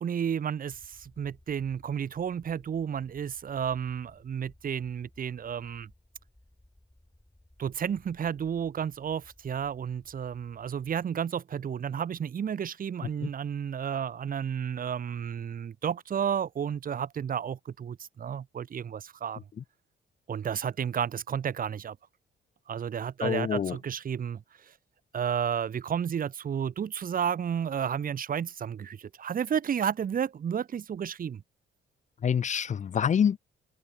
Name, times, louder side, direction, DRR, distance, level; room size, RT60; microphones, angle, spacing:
voice 1, 0.0-5.9 7.6-19.4 20.3-22.0 22.7-24.7 25.1-31.4, right 8 dB, 45° right, 1.1 m, -32 dB
sound 1, 0.7-10.9, left 1 dB, 10° left, 6.6 m, -60 dB
voice 2, 23.2-23.8 32.2-33.4, left 8 dB, 40° left, 0.6 m, -27 dB
cardioid pair, 90°, 20 cm